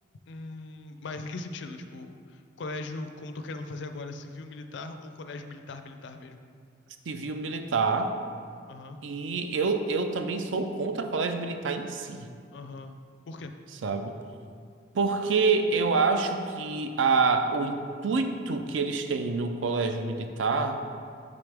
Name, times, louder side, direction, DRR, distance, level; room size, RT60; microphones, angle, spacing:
voice 1, 0.3-6.4 8.7-9.0 12.5-13.0 13.3-13.5, left 2 dB, 70° left, 8 dB, 0.4 m, -39 dB
voice 2, 7.1-8.1 9.0-12.3 13.8-14.1 14.9-20.8, right 4 dB, 85° right, 6 dB, 0.5 m, -27 dB
6.8 x 5.1 x 3.4 m, 2.2 s
head